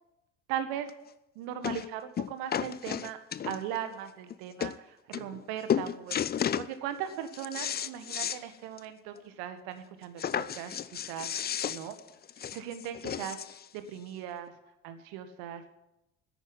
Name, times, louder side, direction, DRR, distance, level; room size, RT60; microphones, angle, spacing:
voice 1, 0.5-0.9 1.4-3.2 3.5-11.3 11.6-12.0 12.5-14.5 14.8-15.8, right 10 dB, 65° right, 9 dB, 1.7 m, -39 dB
sound 1, 0.9-1.0 1.6-1.9 2.2-3.8 4.3-4.4 4.6-4.8 5.1-5.4 5.7-6.7 7.1-8.4 8.8-8.9 9.2-9.3 10.2-13.6 14.5-14.6, left 9 dB, 25° left, 0.5 m, -33 dB
10.5 x 8.9 x 9.8 m, 0.91 s
hypercardioid pair, 65°, 39 cm